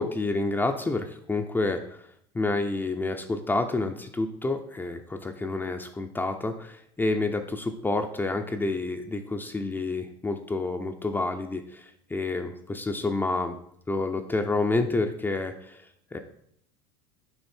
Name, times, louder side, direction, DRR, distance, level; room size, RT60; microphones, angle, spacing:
voice 1, 0.0-2.0 2.3-13.6 13.9-15.8 16.1-16.2, left 2 dB, 15° left, 4 dB, 0.6 m, -29 dB
7.9 x 4.7 x 4.4 m, 0.69 s
supercardioid pair, 95°, 15 cm